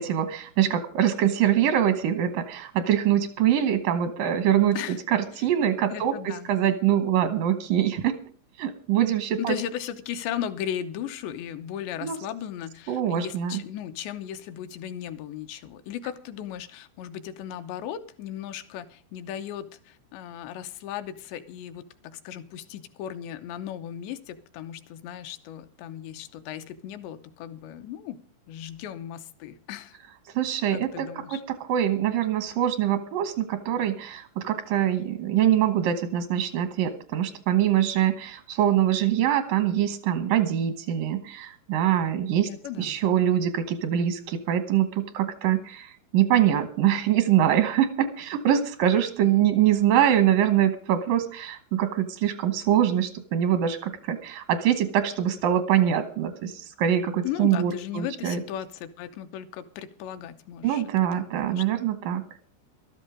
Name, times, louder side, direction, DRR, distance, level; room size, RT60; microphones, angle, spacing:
voice 1, 0.0-4.8 5.1-8.2 8.6-9.6 12.0-12.2 12.9-13.6 30.4-42.5 42.8-58.4 60.6-62.2, right 10 dB, 80° right, 10 dB, 1.9 m, -24 dB
voice 2, 5.9-6.5 9.4-28.2 28.5-30.0 30.7-31.4 42.4-43.0 49.2-49.5 57.2-61.6, left 10 dB, 80° left, 10 dB, 2.9 m, -36 dB
14.0 x 13.0 x 5.0 m, 0.43 s
omnidirectional pair, 5.5 m